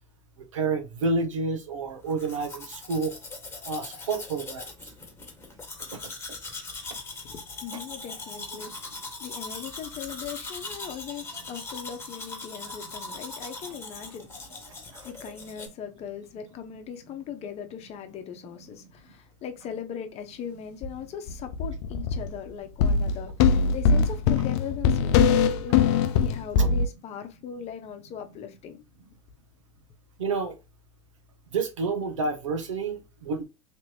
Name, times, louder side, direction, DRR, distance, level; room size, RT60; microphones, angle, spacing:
voice 1, 0.5-3.1 3.6-4.7 5.9-6.0 8.5-8.7 14.9-15.1 26.6-26.7 30.2-30.5 31.5-33.4, right 3 dB, 80° right, 1.0 m, -29 dB
Domestic sounds home sounds, 2.1-15.7, left 3 dB, 15° left, 1.6 m, -40 dB
voice 2, 7.3-14.3 14.8-23.3 23.7-28.8, left 8 dB, 40° left, 0.9 m, -39 dB
sound 1, 20.8-20.9 21.3-22.4 22.8-26.9, left 6 dB, 60° left, 0.5 m, -22 dB
3.3 x 3.0 x 2.8 m
hypercardioid pair, 85°, 16 cm